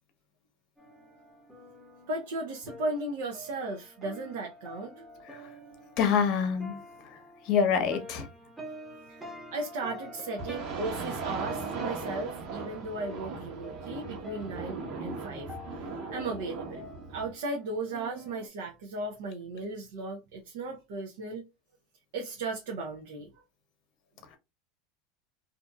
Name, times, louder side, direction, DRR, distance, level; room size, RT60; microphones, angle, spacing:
sound 1, 0.8-18.5, equal, 5° right, 0.8 m, -47 dB
voice 1, 2.1-5.3 9.1-16.8 17.1-21.5 22.1-23.4, right 2 dB, 75° right, 0.7 m, -36 dB
voice 2, 6.0-6.8 7.5-8.3, left 6 dB, 50° left, 0.8 m, -25 dB
sound 2, 10.4-17.3, right 4 dB, 55° right, 1.1 m, -38 dB
2.6 x 2.6 x 2.2 m
supercardioid pair, 125°, 0 cm